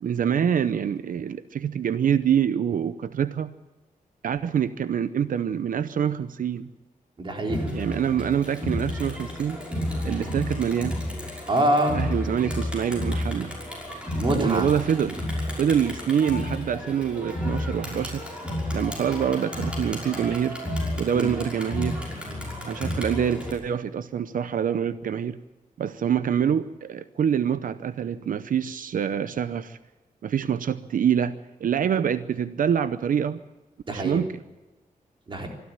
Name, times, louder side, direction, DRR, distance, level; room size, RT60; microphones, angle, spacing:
voice 1, 0.0-3.5 4.2-6.7 7.7-9.6 10.0-11.0 11.9-13.5 14.3-15.2 15.5-18.2 18.7-20.6 21.0-22.0 22.7-25.4 25.8-29.8 30.2-33.4 33.9-34.4, right 8 dB, 75° right, 13 dB, 0.7 m, -25 dB
voice 2, 7.2-7.7 11.5-12.0 14.1-14.7 21.1-21.3 33.9-34.2 35.3-35.5, right 1 dB, 35° right, 2 dB, 3.9 m, -24 dB
Crowd, 7.5-23.5, left 1 dB, 10° right, 5.9 m, -31 dB
25.0 x 13.0 x 8.8 m, 1.1 s
wide cardioid pair, 165°, 14 cm